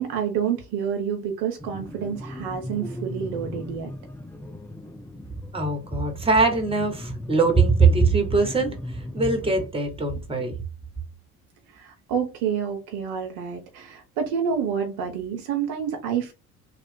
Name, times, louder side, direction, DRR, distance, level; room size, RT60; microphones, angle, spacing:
voice 1, 0.0-3.9 11.7-16.3, right 7 dB, 60° right, 0.9 m, -28 dB
sound 1, 1.6-9.7, left 1 dB, 5° left, 0.4 m, -37 dB
voice 2, 5.5-10.5, right 4 dB, 10° right, 1.3 m, -22 dB
3.2 x 2.4 x 3.7 m
figure-of-eight pair, 55°, 46 cm